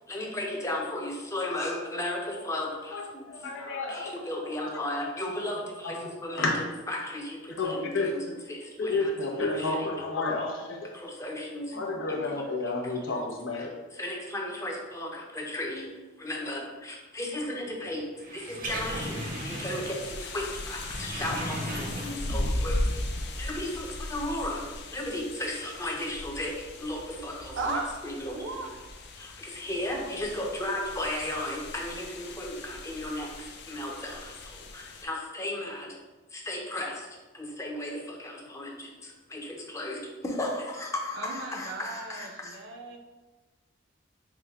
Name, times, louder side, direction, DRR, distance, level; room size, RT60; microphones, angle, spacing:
voice 1, 0.1-3.5 3.9-9.9 10.9-11.8 12.2-12.3 12.6-13.0 13.5-15.9 16.2-18.1 18.3-23.1 23.3-24.7 24.9-27.8 28.0-28.6 29.2-36.0 36.3-37.1 37.3-42.6, left 1 dB, 15° left, -1 dB, 0.6 m, -35 dB
voice 2, 2.9-4.1 5.8-5.9 6.4-6.6 7.6-8.1 8.8-10.9 11.7-13.7, left 3 dB, 85° left, 0 dB, 0.7 m, -30 dB
sound 1, 18.2-20.2 20.4-22.4 22.8-22.9, right 1 dB, 45° right, 0.6 m, -37 dB
sound 2, 18.6-35.0, left 1 dB, 55° left, 0.4 m, -37 dB
voice 3, 27.6-28.0 28.2-28.8 41.1-43.0, right 3 dB, 80° right, 1 dB, 0.7 m, -35 dB
5.0 x 2.2 x 3.5 m, 1.2 s
head